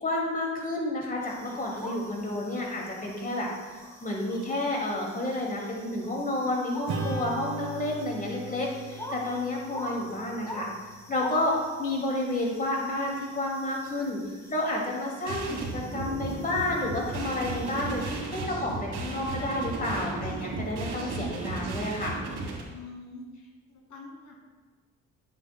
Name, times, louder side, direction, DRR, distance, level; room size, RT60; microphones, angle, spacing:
voice 1, 0.0-10.7 11.1-14.2 14.5-22.1, left 1 dB, 30° left, -2 dB, 2.3 m, -30 dB
sound 1, 1.2-18.2, equal, 10° left, 1.7 m, -45 dB
Acoustic guitar / Strum, 6.9-11.7, right 2 dB, 65° right, 1.6 m, -39 dB
sound 2, 15.3-22.6, right 3 dB, 85° right, 2.2 m, -35 dB
voice 2, 22.7-24.3, left 3 dB, 80° left, -2 dB, 2.0 m, -45 dB
11.0 x 8.5 x 2.2 m, 1.4 s
cardioid pair, 90°, 30 cm